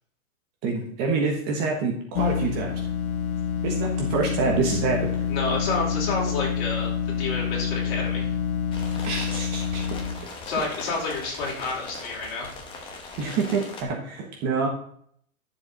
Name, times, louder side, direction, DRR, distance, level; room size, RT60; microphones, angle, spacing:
voice 1, 0.6-2.8 3.6-5.1 9.0-9.8 13.2-14.7, right 4 dB, 25° right, 1 dB, 1.3 m, -26 dB
sound 1, 2.1-10.2, left 8 dB, 80° left, 1.7 m, -27 dB
voice 2, 5.3-8.3 10.4-12.5, left 3 dB, 45° left, -3 dB, 4.6 m, -29 dB
sound 2, 8.7-13.8, left 3 dB, 10° left, 1.0 m, -40 dB
11.5 x 7.0 x 4.1 m, 0.62 s
supercardioid pair, 170°, 43 cm